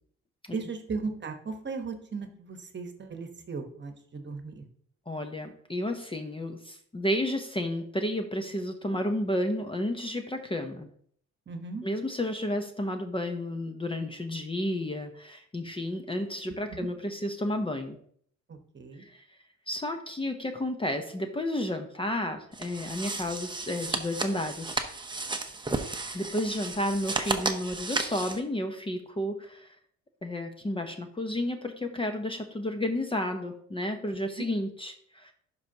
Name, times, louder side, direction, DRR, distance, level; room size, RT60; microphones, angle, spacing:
voice 1, 0.5-4.7 11.5-11.8 16.8-16.9 18.5-19.1 34.4-34.5, right 4 dB, 35° right, 6 dB, 1.1 m, -37 dB
voice 2, 5.1-10.9 11.8-18.0 19.0-19.2 19.7-24.8 26.1-29.7 30.2-35.3, left 1 dB, 15° left, 6 dB, 0.7 m, -32 dB
sound 1, 22.5-28.4, right 3 dB, 15° right, 0.8 m, -33 dB
11.5 x 4.6 x 2.8 m, 0.62 s
cardioid pair, 90°, 30 cm